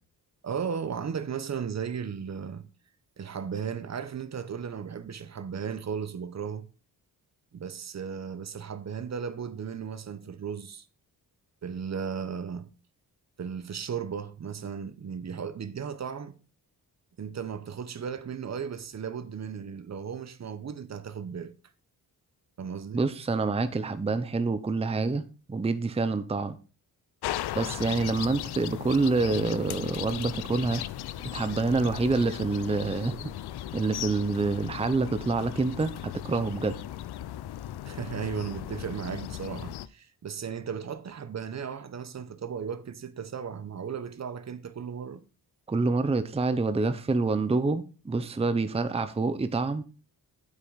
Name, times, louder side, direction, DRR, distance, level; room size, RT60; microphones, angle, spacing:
voice 1, 0.4-2.6 3.2-6.7 7.5-10.8 11.6-12.7 13.4-16.4 17.2-21.5 22.6-23.0 37.8-45.2, right 7 dB, 45° right, 0.9 m, -35 dB
voice 2, 22.9-26.6 27.5-30.8 31.2-33.3 33.7-36.7 45.7-49.8, right 3 dB, 15° right, 0.7 m, -27 dB
sound 1, 27.2-39.9, left 12 dB, 85° left, 0.6 m, -37 dB
8.9 x 8.2 x 4.0 m
cardioid pair, 110°, 38 cm